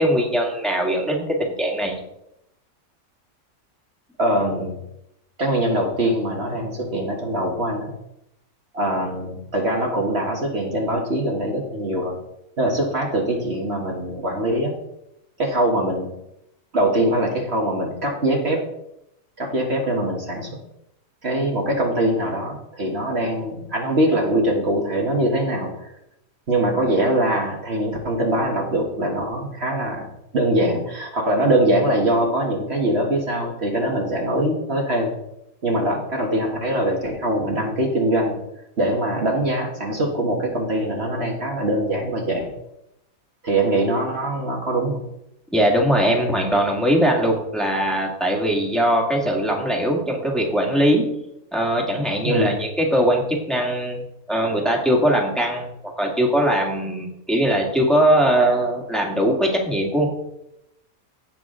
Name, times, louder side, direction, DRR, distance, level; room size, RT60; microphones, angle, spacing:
voice 1, 0.0-2.0 45.5-51.0 51.5-54.0 54.3-60.1, right 1 dB, ahead, -1 dB, 1.9 m, -20 dB
voice 2, 4.2-4.8 5.4-7.9 8.7-12.2 12.6-14.7 15.4-16.1 16.7-18.6 19.4-20.5 21.2-25.9 26.5-35.1 35.6-38.4 38.8-42.5 43.4-45.0 52.2-52.6, right 1 dB, 45° right, 0 dB, 1.7 m, -22 dB
16.5 x 6.1 x 3.7 m, 0.82 s
omnidirectional pair, 1.5 m